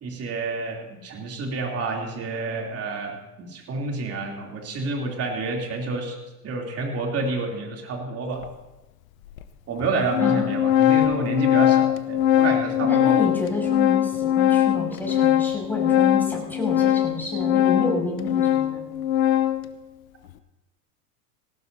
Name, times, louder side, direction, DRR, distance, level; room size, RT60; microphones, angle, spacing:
voice 1, 0.0-6.1 6.4-8.5 9.7-13.2, right 3 dB, 30° right, 0 dB, 3.3 m, -29 dB
Organ, 8.4-8.5 9.4-9.5 9.8-19.7, left 11 dB, 60° left, 1.0 m, -21 dB
voice 2, 10.2-10.6 12.8-18.9, left 2 dB, 5° left, -2 dB, 6.2 m, -29 dB
19.5 x 17.5 x 2.8 m, 1.0 s
figure-of-eight pair, 85°, 47 cm